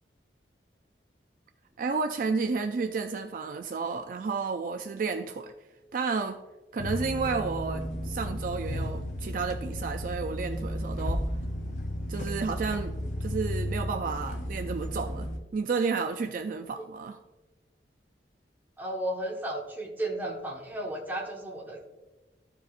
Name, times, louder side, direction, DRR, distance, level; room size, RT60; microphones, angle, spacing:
voice 1, 1.8-5.5 5.9-6.4 6.7-11.2 12.1-17.2, right 4 dB, 50° right, 6 dB, 0.4 m, -31 dB
sound 1, 6.8-15.4, equal, 45° left, 0.7 m, -33 dB
voice 2, 18.8-21.8, right 1 dB, 10° right, -3 dB, 1.3 m, -34 dB
14.0 x 4.9 x 2.5 m, 1.1 s
head